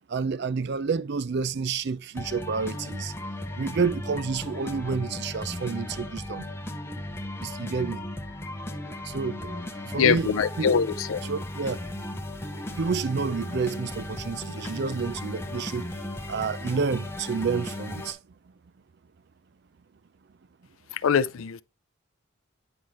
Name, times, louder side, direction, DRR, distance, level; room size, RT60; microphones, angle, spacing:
voice 1, 0.1-3.1 3.6-6.4 7.4-8.0 9.0-10.3 10.6-10.7 11.2-11.8 12.8-16.0 16.3-18.2, right 5 dB, 50° right, 0.4 m, -29 dB
sound 1, 2.1-18.1, left 1 dB, 10° left, 0.7 m, -36 dB
voice 2, 10.0-11.2 21.0-21.6, left 6 dB, 70° left, 0.4 m, -23 dB
9.0 x 5.6 x 3.0 m
head